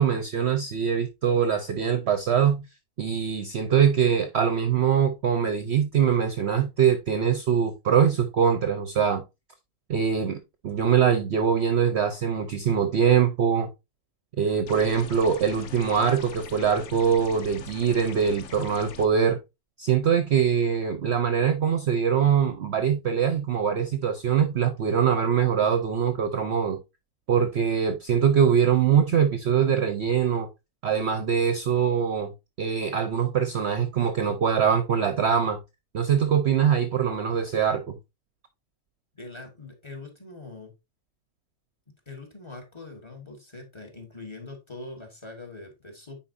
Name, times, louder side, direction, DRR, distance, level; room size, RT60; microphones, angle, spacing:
voice 1, 0.0-2.6 3.0-9.2 9.9-13.7 14.4-19.4 19.8-26.8 27.3-30.5 30.8-32.3 32.6-35.6 35.9-38.0, right 7 dB, 60° right, 0.8 m, -23 dB
sound 1, 14.7-19.1, left 7 dB, 60° left, 1.0 m, -42 dB
voice 2, 39.2-40.7 42.1-46.2, left 3 dB, 20° left, 1.6 m, -42 dB
9.6 x 4.3 x 2.6 m
omnidirectional pair, 1.6 m